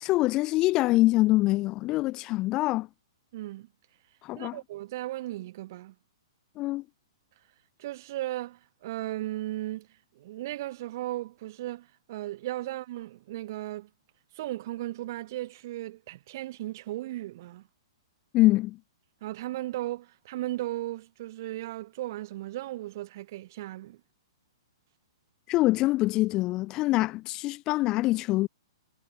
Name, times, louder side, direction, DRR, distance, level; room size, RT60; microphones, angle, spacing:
voice 1, 0.0-2.9 4.2-4.6 6.6-6.8 18.3-18.8 25.5-28.5, left 18 dB, 20° left, 0.9 m, -24 dB
voice 2, 3.3-3.7 4.4-5.9 7.8-9.9 10.2-13.9 14.4-17.6 19.2-24.0, right 16 dB, 40° right, 1.7 m, -36 dB
hypercardioid pair, 170°, 3 cm